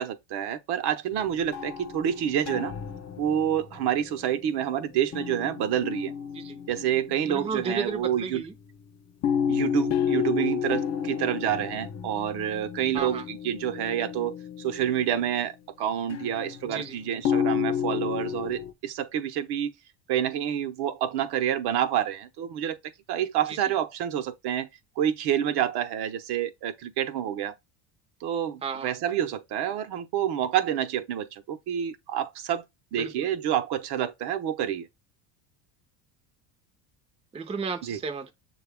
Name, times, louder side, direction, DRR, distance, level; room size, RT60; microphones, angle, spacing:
voice 1, 0.0-2.7 3.2-6.1 6.7-8.4 9.5-15.5 15.8-19.7 20.1-22.8 23.1-24.7 25.0-27.5 28.2-32.6 32.9-34.9 37.9-38.0, right 10 dB, 55° right, 0.8 m, -28 dB
sound 1, 1.1-4.7 5.1-8.4 9.2-15.3 16.1-18.7, left 8 dB, 35° left, 0.6 m, -31 dB
voice 2, 7.2-8.5 12.9-13.3 16.6-17.0 23.5-23.7 28.6-28.9 32.9-33.3 37.3-38.3, right 5 dB, 15° right, 0.6 m, -33 dB
6.5 x 2.3 x 3.4 m
cardioid pair, 120°, 46 cm